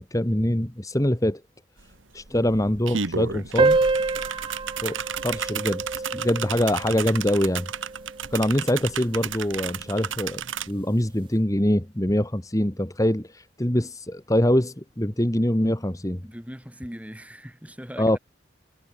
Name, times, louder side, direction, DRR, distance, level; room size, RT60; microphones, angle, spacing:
voice 1, 0.0-1.4 2.1-3.8 4.8-7.7 8.3-16.2 18.0-18.2, left 1 dB, 15° left, 1.6 m, -24 dB
sound 1, 1.8-1.9 2.2-10.7, right 7 dB, 85° right, 2.0 m, -33 dB
sound 2, 3.6-8.6, right 3 dB, 25° right, 0.4 m, -27 dB
voice 2, 16.2-18.2, equal, 5° right, 4.3 m, -40 dB
head